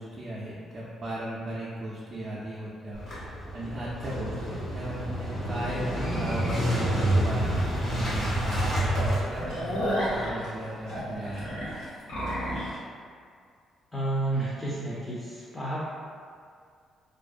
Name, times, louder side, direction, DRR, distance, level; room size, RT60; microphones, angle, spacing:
voice 1, 0.0-3.0 3.5-11.5, right 1 dB, 40° right, -6 dB, 0.4 m, -37 dB
Motorcycle / Engine starting, 3.0-10.2, right 1 dB, 70° left, 1.3 m, -28 dB
sound 1, 7.5-7.6 8.1-8.2 8.5-8.6 9.0-12.8, equal, 85° left, 0.8 m, -32 dB
voice 2, 13.9-15.8, right 2 dB, 20° left, -8 dB, 0.5 m, -30 dB
2.5 x 2.0 x 2.4 m, 2.2 s
cardioid pair, 90°, 0 cm